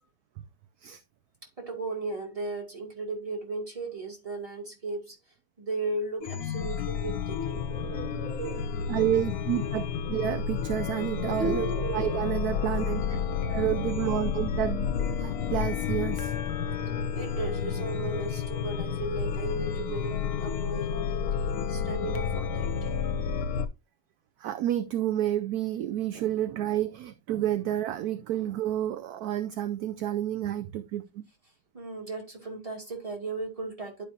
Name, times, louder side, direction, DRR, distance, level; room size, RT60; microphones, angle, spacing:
voice 1, 1.6-5.2 5.6-7.6 17.1-22.9 31.7-34.0, right 3 dB, 20° right, 2.5 m, -36 dB
Chime, 6.2-23.7, left 7 dB, 65° left, 1.1 m, -31 dB
sound 1, 7.3-8.6 10.1-10.2 10.9-12.2, right 4 dB, 50° right, 1.3 m, -35 dB
voice 2, 8.9-16.3 24.4-31.2, right 12 dB, 70° right, 1.0 m, -30 dB
11.5 x 5.2 x 2.7 m
omnidirectional pair, 1.9 m